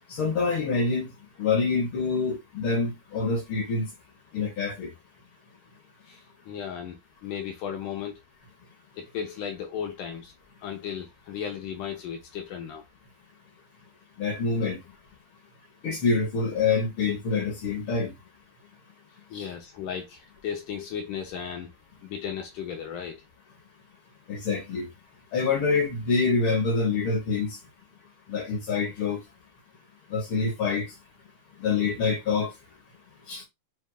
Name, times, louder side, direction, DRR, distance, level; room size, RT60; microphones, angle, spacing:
voice 1, 0.1-1.1 1.4-3.9 4.3-4.9 14.2-14.8 15.8-18.1 19.3-19.5 24.3-24.9 25.3-27.6 28.3-29.2 30.1-30.9 31.6-32.5 33.3-33.5, left 4 dB, 55° left, 1.5 m, -26 dB
voice 2, 6.0-8.2 9.0-10.3 10.6-12.8 19.3-21.7 22.0-23.2, left 8 dB, 75° left, 2.3 m, -35 dB
7.3 x 2.6 x 2.3 m
omnidirectional pair, 3.9 m